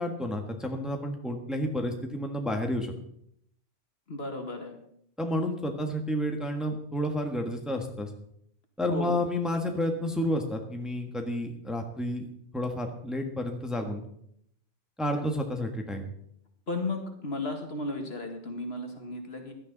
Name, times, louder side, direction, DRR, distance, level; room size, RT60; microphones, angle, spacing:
voice 1, 0.0-2.9 5.2-8.1 8.8-12.3 12.5-14.0 15.0-16.0, left 1 dB, ahead, 3 dB, 1.5 m, -30 dB
voice 2, 4.1-4.7 8.9-9.2 16.7-19.5, left 2 dB, 55° left, 3 dB, 2.2 m, -34 dB
16.5 x 11.5 x 4.0 m, 0.70 s
omnidirectional pair, 1.2 m